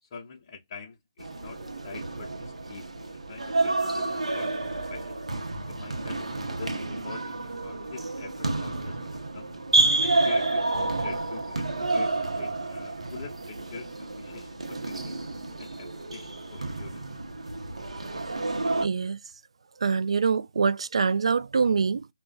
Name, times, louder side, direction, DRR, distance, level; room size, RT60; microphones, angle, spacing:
voice 1, 0.0-2.8 3.3-5.2 5.7-7.4 7.6-9.5 10.0-11.6 11.9-13.9 14.2-15.2 15.6-17.0, left 5 dB, 35° left, 0.7 m, -45 dB
sound 1, 1.2-18.9, right 2 dB, 85° right, 0.7 m, -30 dB
voice 2, 18.8-19.2 19.8-22.1, right 5 dB, 70° right, 0.3 m, -24 dB
2.4 x 2.1 x 3.8 m
figure-of-eight pair, 150°, 3 cm